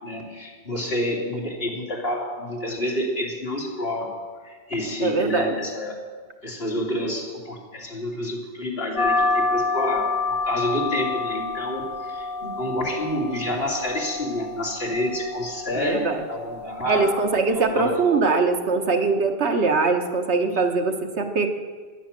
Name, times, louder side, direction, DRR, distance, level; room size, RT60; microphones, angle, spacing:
voice 1, 0.0-4.2 4.4-6.0 6.4-17.2 17.5-18.2, left 1 dB, 60° left, -2 dB, 3.3 m, -29 dB
voice 2, 5.0-5.5 15.7-16.2 16.9-21.5, right 4 dB, 80° right, 5 dB, 1.4 m, -22 dB
sound 1, 9.0-18.0, left 3 dB, 30° left, 1.4 m, -29 dB
15.0 x 10.5 x 7.4 m, 1.5 s
omnidirectional pair, 1.1 m